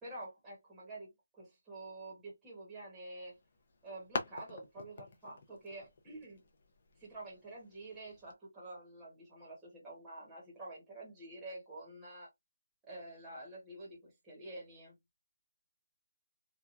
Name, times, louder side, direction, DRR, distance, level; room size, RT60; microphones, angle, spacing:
voice 1, 0.0-3.4 3.8-6.4 7.0-12.3 12.8-15.0, right 2 dB, 5° right, 1.1 m, -48 dB
sound 1, 3.2-8.3, left 3 dB, 40° left, 0.7 m, -46 dB
3.0 x 2.3 x 2.4 m
hypercardioid pair, 175°, 0 cm